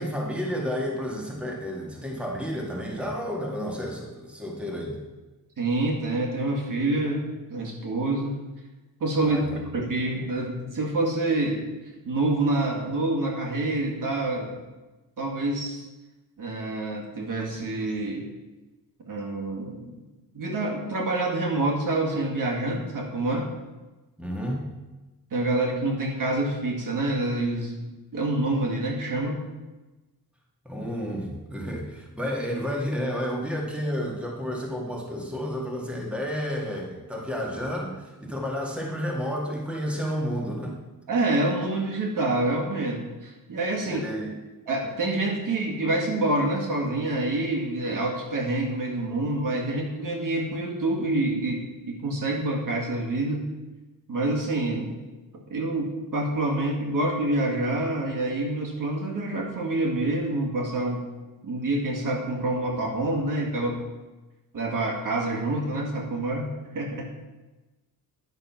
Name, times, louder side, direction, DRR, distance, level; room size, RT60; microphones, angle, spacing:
voice 1, 0.0-5.0 9.2-9.6 24.2-24.6 30.7-40.8 43.8-44.3, equal, 5° right, -2 dB, 2.0 m, -31 dB
voice 2, 5.6-7.2 7.5-8.4 9.0-9.4 9.7-11.6 12.1-14.6 15.2-15.8 16.4-18.3 19.1-19.9 20.3-23.5 25.3-27.8 28.1-29.4 41.1-44.0 44.7-53.5 54.1-55.0 55.5-61.1 61.4-63.8 64.5-67.1, right 2 dB, 60° right, 0 dB, 2.1 m, -27 dB
10.5 x 6.6 x 5.9 m, 1.1 s
wide cardioid pair, 115°, 35 cm